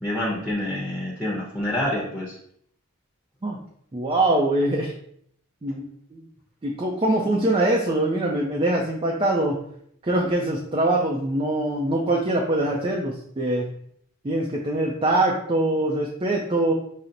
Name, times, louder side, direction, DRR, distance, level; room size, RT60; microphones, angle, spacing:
voice 1, 0.0-2.4, left 1 dB, ahead, -5 dB, 0.8 m, -27 dB
voice 2, 3.9-4.9 5.6-5.9 6.1-6.2 6.6-9.6 10.0-13.7 14.2-16.7, right 1 dB, 25° right, -1 dB, 0.4 m, -23 dB
5.6 x 2.0 x 3.8 m, 0.68 s
head